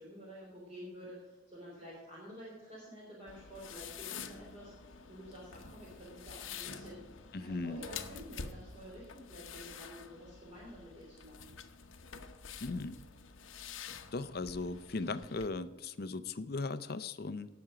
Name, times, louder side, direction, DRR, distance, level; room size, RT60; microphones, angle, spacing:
voice 1, 0.0-7.0 7.4-11.5, equal, 30° right, -5 dB, 3.3 m, -50 dB
sound 1, 3.3-15.5, left 6 dB, 80° left, 0.9 m, -48 dB
voice 2, 7.3-7.8 12.6-13.0 14.1-17.5, left 3 dB, 50° left, 13 dB, 0.6 m, -38 dB
18.0 x 6.1 x 5.0 m, 1.2 s
head